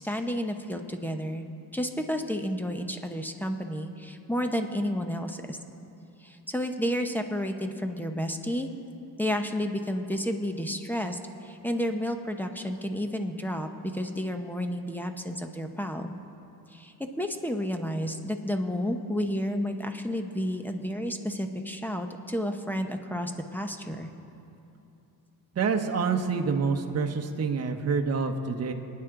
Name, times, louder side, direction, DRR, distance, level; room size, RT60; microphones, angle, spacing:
voice 1, 0.0-1.4 1.7-5.6 6.2-8.7 9.2-16.1 16.7-24.1, equal, 5° left, 5 dB, 0.9 m, -31 dB
voice 2, 25.5-28.7, right 5 dB, 40° right, 4 dB, 1.0 m, -27 dB
25.0 x 9.6 x 3.8 m, 2.8 s
cardioid pair, 115°, 37 cm